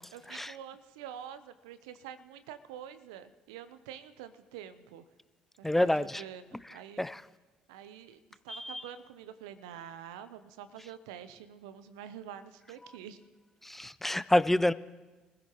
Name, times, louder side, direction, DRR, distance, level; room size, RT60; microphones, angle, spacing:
voice 1, 0.1-5.0 5.6-7.1 7.7-13.2, right 9 dB, 80° right, 0.7 m, -47 dB
voice 2, 5.6-6.2 7.0-7.2 8.5-8.8 13.6-14.7, left 1 dB, 10° left, 0.5 m, -27 dB
26.0 x 15.0 x 3.1 m
hypercardioid pair, 55°, 3 cm